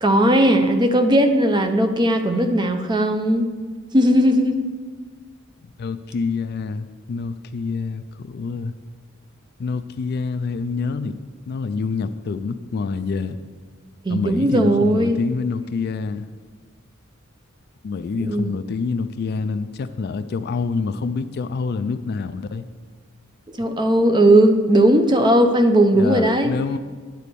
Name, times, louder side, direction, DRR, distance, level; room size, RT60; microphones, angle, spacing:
voice 1, 0.0-3.4 3.9-4.6 14.0-15.2 18.2-18.5 23.6-26.5, right 1 dB, 20° right, 7 dB, 0.6 m, -17 dB
voice 2, 5.8-8.7 9.6-11.2 11.5-13.4 14.1-16.3 17.8-22.6 25.9-26.8, left 4 dB, 50° left, 11 dB, 0.3 m, -27 dB
9.8 x 4.2 x 6.7 m, 1.5 s
head